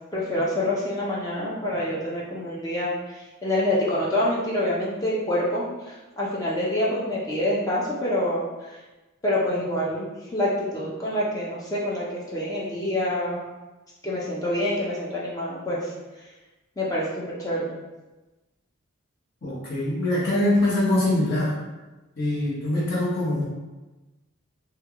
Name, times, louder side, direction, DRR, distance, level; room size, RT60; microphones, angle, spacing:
voice 1, 0.1-8.8 9.2-13.4 14.0-15.9 16.8-17.7, left 1 dB, 15° left, -6 dB, 0.5 m, -26 dB
voice 2, 19.4-21.6 22.2-23.4, left 1 dB, 50° left, -7 dB, 0.9 m, -23 dB
3.2 x 2.3 x 3.5 m, 1.1 s
head